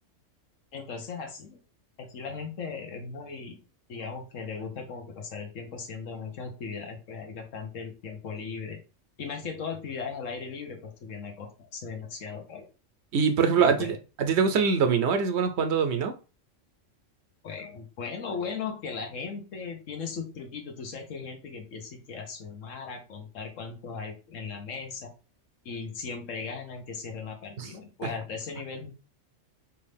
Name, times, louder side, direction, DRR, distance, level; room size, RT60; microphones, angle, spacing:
voice 1, 0.7-1.6 2.0-3.6 3.9-8.8 9.2-12.7 13.6-14.0 17.4-25.1 25.6-28.9, left 5 dB, 80° left, 1.3 m, -37 dB
voice 2, 13.1-16.1 27.6-27.7, right 6 dB, 70° right, 0.8 m, -24 dB
4.6 x 2.7 x 3.4 m
omnidirectional pair, 1.3 m